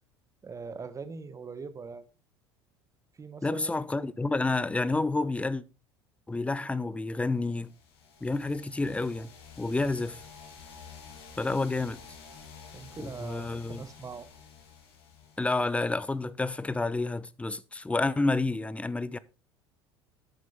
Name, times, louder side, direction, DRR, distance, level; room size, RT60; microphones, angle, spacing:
voice 1, 0.4-2.0 3.2-3.9 12.7-14.3, right 5 dB, 25° right, 1.5 m, -42 dB
voice 2, 3.4-5.6 6.3-7.7 8.2-9.3 9.6-10.2 11.4-12.0 13.0-13.9 15.4-19.2, left 3 dB, 10° left, 0.7 m, -29 dB
sound 1, 7.4-16.1, left 6 dB, 65° left, 2.7 m, -50 dB
13.0 x 9.2 x 3.6 m
figure-of-eight pair, 65°, 14 cm